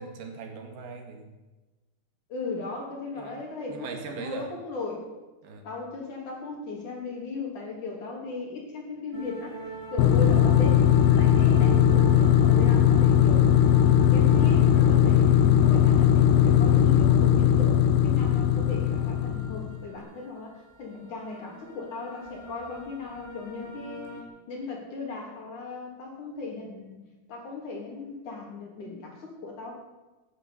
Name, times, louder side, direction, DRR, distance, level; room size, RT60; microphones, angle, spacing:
voice 1, 0.0-1.3 3.2-3.4 3.7-4.5 5.4-5.7, right 4 dB, 85° right, 4 dB, 4.1 m, -40 dB
voice 2, 2.3-5.1 5.6-13.4 13.8-24.1 24.5-27.0 27.3-29.7, left 3 dB, 55° left, 0 dB, 4.6 m, -37 dB
sound 1, 9.1-24.2, right 2 dB, 10° right, 1.6 m, -41 dB
sound 2, 10.0-19.8, left 10 dB, 90° left, 2.8 m, -19 dB
17.0 x 9.8 x 8.7 m, 1.1 s
omnidirectional pair, 4.3 m